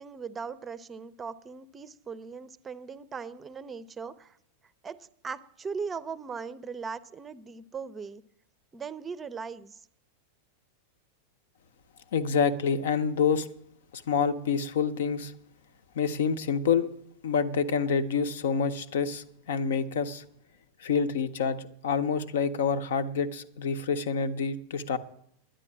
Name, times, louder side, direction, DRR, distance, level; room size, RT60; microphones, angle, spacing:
voice 1, 0.0-4.4 4.8-8.2 8.7-9.9, right 5 dB, 20° right, 0.6 m, -39 dB
voice 2, 12.1-13.5 13.9-15.3 16.0-16.9 17.2-20.2 20.8-25.0, left 6 dB, 60° left, 0.8 m, -27 dB
10.5 x 10.0 x 7.4 m
figure-of-eight pair, 90°, 0 cm